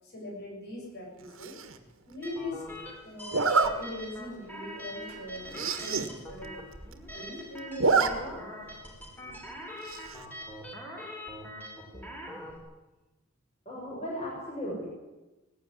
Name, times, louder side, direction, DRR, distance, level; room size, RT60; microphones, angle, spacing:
voice 1, 0.0-1.6 2.1-2.6 3.0-6.7 7.1-8.4 9.1-9.6, left 1 dB, 50° left, -1 dB, 7.6 m, -41 dB
Zipper (clothing), 1.4-1.8 3.3-3.7 4.3-4.4 4.8-4.9 5.1-5.2 5.5-6.1 6.4-6.5 6.7-7.3 7.6-8.1 8.4-8.5 9.9-10.2, right 4 dB, 65° right, 1.6 m, -27 dB
sound 1, 2.2-12.6, equal, 10° left, 3.6 m, -43 dB
voice 2, 13.6-14.9, equal, 30° left, -4 dB, 6.7 m, -36 dB
18.5 x 15.0 x 9.6 m, 1.1 s
head